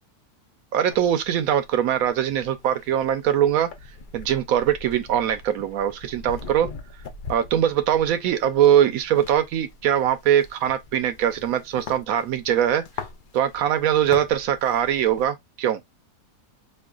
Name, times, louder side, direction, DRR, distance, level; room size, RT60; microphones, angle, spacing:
voice 1, 0.7-3.7 4.1-6.7 7.3-12.8 13.3-15.8, right 10 dB, 80° right, 1.1 m, -22 dB
sound 1, 0.9-15.3, left 4 dB, 50° left, 0.6 m, -43 dB
5.3 x 2.4 x 2.3 m
omnidirectional pair, 1.5 m